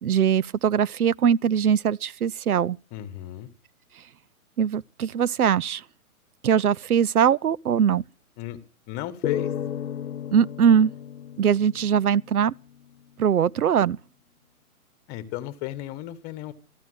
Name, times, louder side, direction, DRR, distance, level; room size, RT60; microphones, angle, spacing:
voice 1, 0.0-2.8 4.6-5.8 6.4-8.0 10.3-10.9 11.4-12.5 13.2-14.0, right 8 dB, 85° right, 0.7 m, -21 dB
voice 2, 2.9-3.5 8.4-8.6 8.9-9.5 15.1-16.5, left 14 dB, 20° left, 1.5 m, -34 dB
sound 1, 9.2-12.6, left 9 dB, 70° left, 0.9 m, -33 dB
14.0 x 11.0 x 8.1 m
hypercardioid pair, 145°, 43 cm